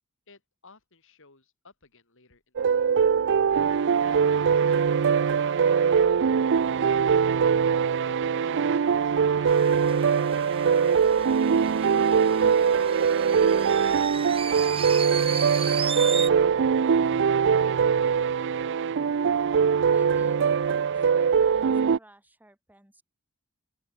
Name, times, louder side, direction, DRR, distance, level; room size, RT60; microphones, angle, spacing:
voice 1, 0.3-3.2 3.7-7.4 8.1-11.2 12.4-14.2 15.0-18.0, left 3 dB, 65° left, 6.6 m, -56 dB
sound 1, 2.6-22.0, right 6 dB, 55° right, 0.4 m, -22 dB
sound 2, 9.5-16.3, right 6 dB, 25° right, 2.5 m, -35 dB
voice 2, 19.9-23.0, right 1 dB, 10° right, 6.3 m, -55 dB
open air
head